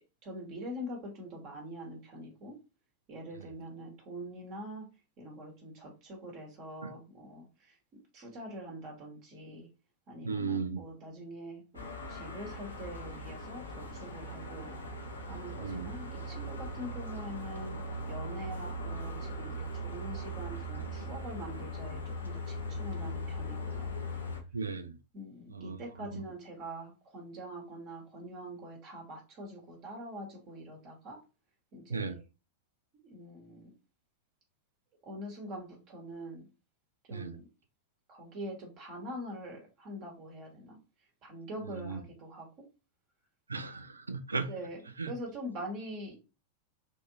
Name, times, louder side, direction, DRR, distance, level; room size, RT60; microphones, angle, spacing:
voice 1, 0.2-2.6 3.1-4.9 5.2-7.8 8.1-9.7 10.1-11.6 12.1-14.8 15.3-17.8 18.1-23.9 25.1-31.2 31.7-32.2 33.0-33.7 35.0-36.4 37.1-37.4 38.1-40.8 41.2-42.5 44.5-44.8 45.1-46.1, equal, 40° right, 1.2 m, -44 dB
voice 2, 10.2-10.8 15.6-15.9 24.5-24.9 25.5-25.8 26.1-26.2 31.9-32.1 37.1-37.3 41.7-42.0 43.5-44.5 45.0-45.1, right 4 dB, 75° right, 0.4 m, -35 dB
sound 1, 11.7-24.4, equal, 75° left, 0.7 m, -39 dB
3.5 x 2.6 x 2.8 m
figure-of-eight pair, 90°, 0 cm